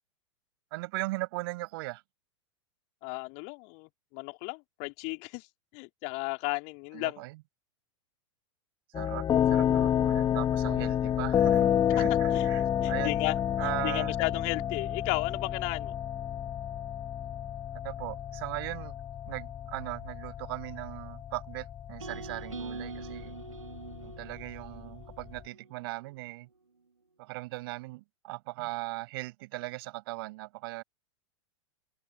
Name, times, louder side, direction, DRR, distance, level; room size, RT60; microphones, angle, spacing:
voice 1, 0.7-2.0 6.9-7.4 8.9-13.2 13.6-14.1 17.8-18.9 19.3-23.4 24.0-26.5 27.2-30.8, right 21 dB, 50° right, 7.0 m, -38 dB
voice 2, 3.0-5.5 5.7-7.2 12.0-12.1 12.3-12.5 12.8-15.9, left 36 dB, 45° left, 3.1 m, -34 dB
sound 1, 8.9-25.4, left 10 dB, 25° left, 2.3 m, -30 dB
sound 2, 22.0-26.1, right 4 dB, 80° right, 2.6 m, -43 dB
open air
figure-of-eight pair, 95°, 16 cm